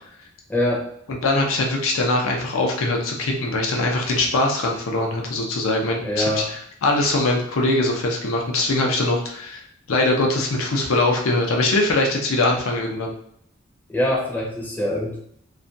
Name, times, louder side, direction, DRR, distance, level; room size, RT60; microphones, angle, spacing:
voice 1, 0.5-0.9 6.0-6.5 13.9-15.2, left 1 dB, 10° left, -2 dB, 0.5 m, -23 dB
voice 2, 1.2-13.1, left 2 dB, 85° left, 1 dB, 0.6 m, -22 dB
2.4 x 2.2 x 2.6 m, 0.69 s
head